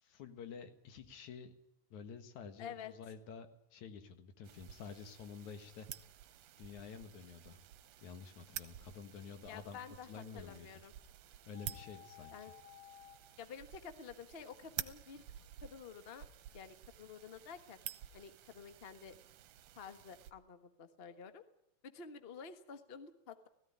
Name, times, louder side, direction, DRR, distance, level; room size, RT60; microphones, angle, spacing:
voice 1, 0.0-1.5 1.9-5.9 6.6-7.6 8.0-9.8 10.1-10.7 11.5-12.5, left 6 dB, 80° left, 8 dB, 3.0 m, -50 dB
voice 2, 2.6-2.9 9.5-10.9 12.3-12.5 13.4-15.2 15.6-16.2 16.5-17.8 18.1-19.1 19.8-21.4 21.9-23.5, left 6 dB, 50° left, 9 dB, 0.7 m, -50 dB
sound 1, 4.4-20.3, right 11 dB, 70° right, 2.0 m, -51 dB
headset battery low, 11.5-13.1, left 11 dB, 5° left, 7.3 m, -56 dB
17.0 x 16.0 x 10.0 m, 0.78 s
omnidirectional pair, 3.3 m